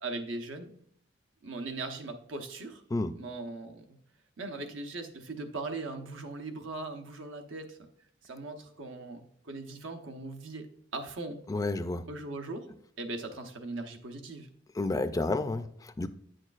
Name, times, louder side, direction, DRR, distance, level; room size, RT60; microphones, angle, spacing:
voice 1, 0.0-0.7 1.4-2.8 3.1-3.8 4.4-7.8 8.2-11.4 12.1-12.7 13.0-14.5, right 2 dB, 85° right, 6 dB, 0.9 m, -39 dB
voice 2, 11.5-12.1 14.7-16.1, left 2 dB, 20° left, 11 dB, 0.3 m, -30 dB
9.1 x 6.3 x 2.4 m, 0.65 s
head